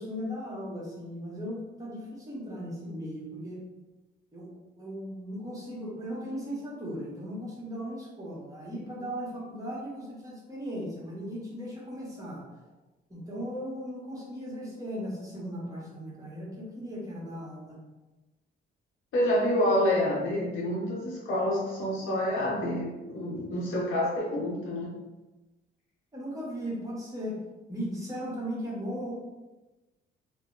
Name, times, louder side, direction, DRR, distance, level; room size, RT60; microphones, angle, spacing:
voice 1, 0.0-3.6 4.3-12.5 13.1-17.8 26.1-27.4 27.7-29.2, equal, 15° right, -5 dB, 1.2 m, -37 dB
voice 2, 19.1-24.9, left 1 dB, 90° left, -4 dB, 1.1 m, -28 dB
2.7 x 2.1 x 3.8 m, 1.1 s
cardioid pair, 90°, 20 cm